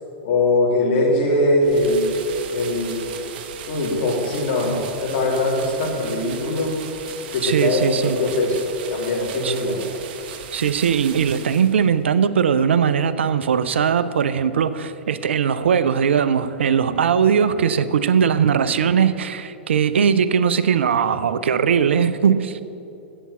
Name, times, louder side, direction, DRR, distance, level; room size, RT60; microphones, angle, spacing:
voice 1, 0.2-2.1 2.5-3.0 3.7-6.7 7.3-8.6 8.9-9.8, left 2 dB, 50° left, -2 dB, 2.9 m, -21 dB
sound 1, 1.6-12.0, right 8 dB, 55° right, 0.9 m, -37 dB
voice 2, 7.4-8.2 9.4-9.5 10.5-22.6, right 7 dB, 70° right, 13 dB, 0.5 m, -19 dB
8.2 x 7.2 x 8.2 m, 2.8 s
figure-of-eight pair, 105°, 6 cm